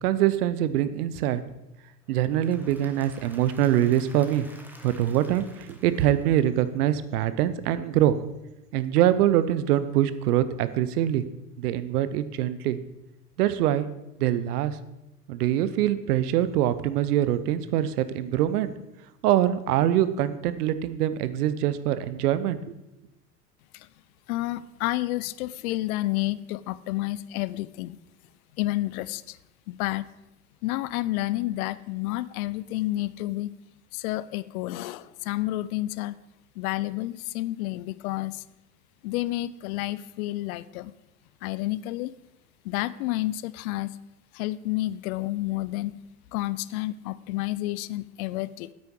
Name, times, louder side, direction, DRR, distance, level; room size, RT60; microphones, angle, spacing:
voice 1, 0.0-1.4 2.1-4.5 4.8-8.2 8.7-11.2 11.6-12.8 13.4-13.9 14.2-14.8 15.3-18.7 19.2-22.8, right 12 dB, 70° right, 14 dB, 0.9 m, -24 dB
Applause / Crowd, 2.1-7.0, right 1 dB, 5° right, 1.2 m, -51 dB
voice 2, 24.3-28.0 28.6-29.4 29.7-30.1 30.6-33.5 33.9-36.1 36.6-38.4 39.0-40.9 41.4-42.1 42.6-44.0 44.3-46.0 46.3-48.7, left 17 dB, 60° left, 18 dB, 0.6 m, -30 dB
9.5 x 8.5 x 4.7 m, 0.93 s
hypercardioid pair, 85°, 49 cm